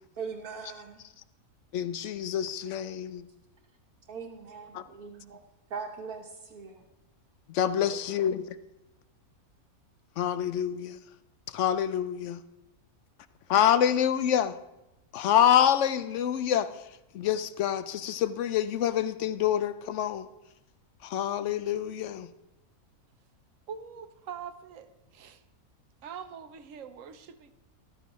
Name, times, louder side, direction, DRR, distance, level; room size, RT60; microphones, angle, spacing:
voice 1, 0.1-1.0 4.1-5.4 5.7-6.8 7.8-8.2, right 5 dB, 80° right, 1.6 m, -41 dB
voice 2, 1.7-3.2 4.7-4.8 7.5-8.4 10.2-11.0 11.5-12.4 13.5-14.5 15.1-16.7 17.1-20.3 21.0-22.3, left 10 dB, 65° left, 0.8 m, -26 dB
voice 3, 23.7-24.9 25.1-25.4 26.0-27.5, right 7 dB, 65° right, 1.0 m, -43 dB
14.0 x 13.0 x 3.1 m
omnidirectional pair, 1.6 m